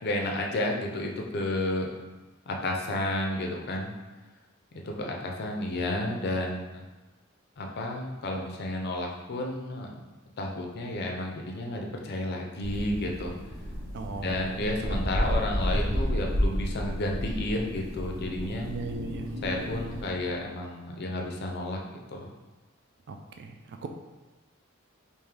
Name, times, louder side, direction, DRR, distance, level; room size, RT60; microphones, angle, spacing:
voice 1, 0.0-2.0 2.5-3.9 4.8-6.8 7.6-10.0 10.4-13.3 14.2-18.7 19.4-22.3, left 1 dB, 50° left, 1 dB, 0.5 m, -31 dB
sound 1, 12.6-20.1, equal, 80° right, 1.0 m, -31 dB
voice 2, 13.9-14.4 18.7-19.3 23.1-23.9, right 4 dB, 55° right, 4 dB, 0.3 m, -38 dB
3.6 x 2.6 x 3.3 m, 1.2 s
head